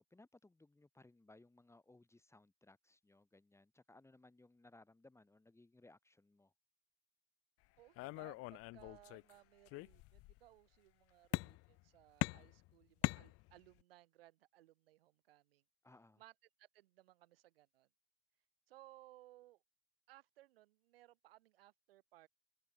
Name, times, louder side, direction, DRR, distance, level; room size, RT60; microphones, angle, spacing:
voice 1, 0.0-6.5 15.8-16.2, left 2 dB, 10° left, 2.8 m, -64 dB
voice 2, 7.8-15.6 16.2-16.3 16.6-17.9 18.7-19.6 20.1-22.3, right 16 dB, 75° right, 6.9 m, -63 dB
sound 1, 8.0-9.3 9.7-10.4 11.3-11.8 12.2-13.8, left 22 dB, 50° left, 0.9 m, -41 dB
hypercardioid pair, 85°, 29 cm